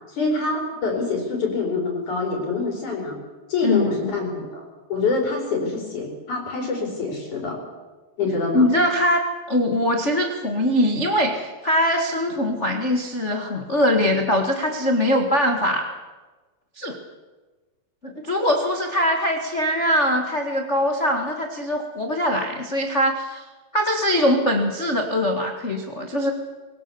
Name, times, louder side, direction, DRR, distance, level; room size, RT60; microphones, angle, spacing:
voice 1, 0.1-3.1 3.5-4.6 4.9-7.6 8.2-8.7, left 3 dB, 50° left, 0 dB, 4.9 m, -25 dB
voice 2, 3.6-4.1 8.5-9.2 9.5-15.9 16.8-17.0 18.2-23.4 23.7-26.3, left 1 dB, 85° left, 2 dB, 0.6 m, -22 dB
24.0 x 17.5 x 7.0 m, 1.3 s
omnidirectional pair, 4.5 m